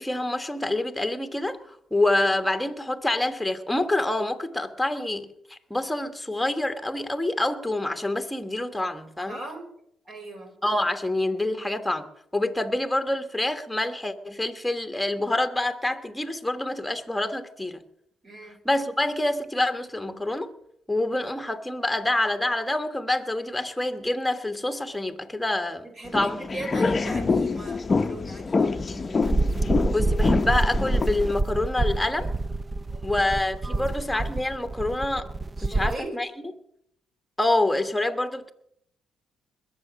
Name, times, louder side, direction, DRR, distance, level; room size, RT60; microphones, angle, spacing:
voice 1, 0.0-9.4 10.6-17.8 18.6-20.5 20.9-25.9 26.1-26.4 29.9-32.3 33.0-35.3 35.6-36.3 37.4-38.5, left 1 dB, 5° left, 1.3 m, -27 dB
voice 2, 9.3-9.7 10.0-10.5 18.2-18.6 25.8-29.3 32.9-33.1 33.6-33.9 35.6-36.1, right 2 dB, 45° right, 4.5 m, -39 dB
sound 1, 26.1-31.3, left 4 dB, 30° left, 0.7 m, -26 dB
sound 2, 29.2-35.9, right 2 dB, 25° right, 0.6 m, -27 dB
20.5 x 7.1 x 6.3 m
cardioid pair, 90°, 0 cm